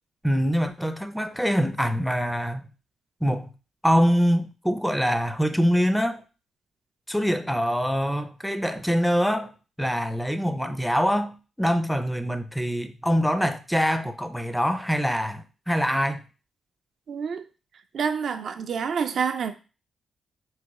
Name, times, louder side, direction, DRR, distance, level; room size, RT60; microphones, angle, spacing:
voice 1, 0.2-2.7 3.2-3.5 3.8-6.2 7.1-9.5 9.8-16.2, equal, ahead, 0.4 m, -24 dB
voice 2, 17.1-17.4 17.9-19.5, right 6 dB, 65° right, 0.3 m, -27 dB
3.1 x 2.2 x 3.5 m
cardioid pair, 65°, 0 cm